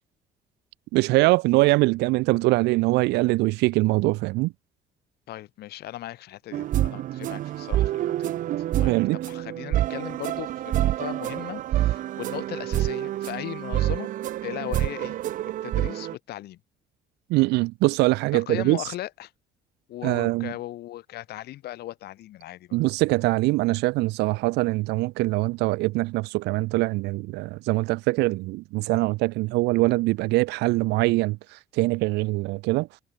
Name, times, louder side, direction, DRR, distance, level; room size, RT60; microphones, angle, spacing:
voice 1, 0.9-4.5 8.8-9.2 17.3-18.9 20.0-20.5 22.7-32.9, right 21 dB, 90° right, 0.7 m, -23 dB
voice 2, 5.3-8.4 8.8-14.1 14.4-15.2 15.6-16.6 18.3-19.3 19.9-22.8, left 14 dB, 70° left, 2.9 m, -37 dB
sound 1, 6.5-16.2, right 13 dB, 50° right, 0.4 m, -27 dB
cardioid pair, 110°, 17 cm